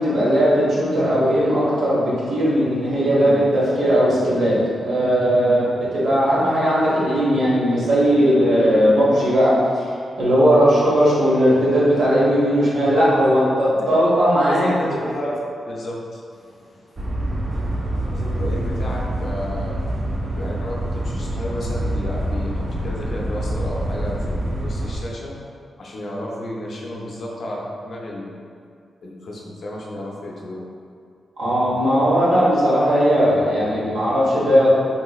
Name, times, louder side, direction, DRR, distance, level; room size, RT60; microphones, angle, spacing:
voice 1, 0.0-9.9 10.2-14.8 31.4-34.7, equal, 85° right, -8 dB, 1.1 m, -18 dB
voice 2, 3.2-3.7 13.2-13.5 14.5-15.4 15.7-17.1 18.1-19.8 20.3-25.3 25.8-28.3 29.0-30.6, left 1 dB, 45° left, -3 dB, 0.5 m, -32 dB
sound 1, 17.0-25.0, right 1 dB, 30° right, 0.3 m, -26 dB
3.7 x 2.9 x 2.3 m, 2.2 s
wide cardioid pair, 170°, 0 cm